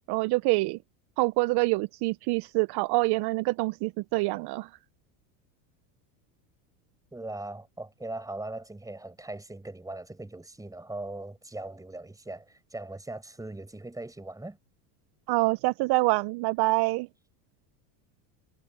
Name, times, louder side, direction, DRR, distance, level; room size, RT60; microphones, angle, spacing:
voice 1, 0.1-0.8 1.2-4.7 15.3-17.1, right 23 dB, 50° right, 0.7 m, -26 dB
voice 2, 7.1-14.6, right 2 dB, 5° right, 5.5 m, -40 dB
supercardioid pair, 115°, 49 cm